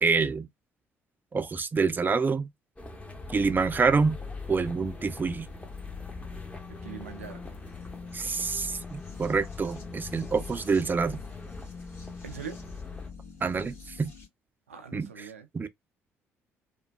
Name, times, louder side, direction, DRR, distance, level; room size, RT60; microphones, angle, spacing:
voice 1, 0.0-0.5 1.3-2.5 3.3-4.2 4.5-5.5 8.1-11.2 13.4-14.1 14.9-15.3 15.5-15.7, right 4 dB, 25° right, 0.4 m, -27 dB
sound 1, 2.8-13.1, left 2 dB, 15° left, 0.9 m, -45 dB
sound 2, 3.1-14.3, left 5 dB, 35° left, 1.6 m, -43 dB
voice 2, 6.8-7.4 12.2-12.6 14.7-15.5, right 7 dB, 85° right, 0.4 m, -41 dB
3.3 x 2.1 x 2.2 m
figure-of-eight pair, 50°, 7 cm